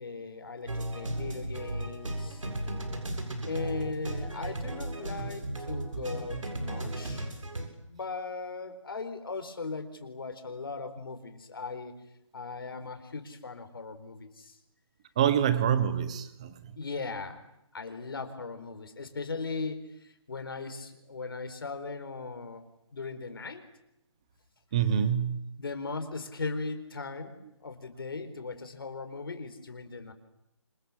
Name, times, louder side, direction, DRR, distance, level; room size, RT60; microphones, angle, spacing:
voice 1, 0.0-2.4 3.4-7.3 7.8-11.9 12.3-14.6 16.8-17.4 17.7-23.7 24.8-24.9 25.6-30.1, left 4 dB, 45° left, 4.4 m, -38 dB
sound 1, 0.7-7.7, right 1 dB, 80° right, 7.9 m, -35 dB
voice 2, 15.2-16.5 24.7-25.4, right 9 dB, 10° right, 1.1 m, -26 dB
28.0 x 26.5 x 7.3 m
hypercardioid pair, 175°, 16 cm